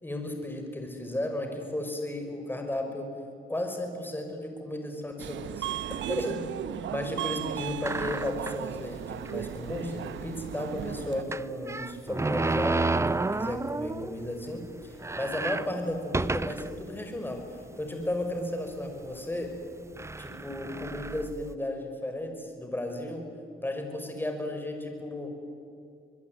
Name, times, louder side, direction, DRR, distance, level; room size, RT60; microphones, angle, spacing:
voice 1, 0.0-3.1 3.5-5.7 6.1-6.5 6.9-19.6 20.2-23.2 23.6-25.3, left 1 dB, 10° left, 4 dB, 5.6 m, -34 dB
Subway metro underground, 5.2-11.2, right 11 dB, 70° right, 0.9 m, -36 dB
sound 1, 7.8-8.7 9.3-9.4 9.6-9.7 11.3-14.2 14.6-14.7 14.9-16.8 17.4-17.5 18.4-18.7 19.5-19.6 20.0-21.5, right 3 dB, 15° right, 0.6 m, -31 dB
25.5 x 21.5 x 9.3 m, 2.6 s
cardioid pair, 90°, 20 cm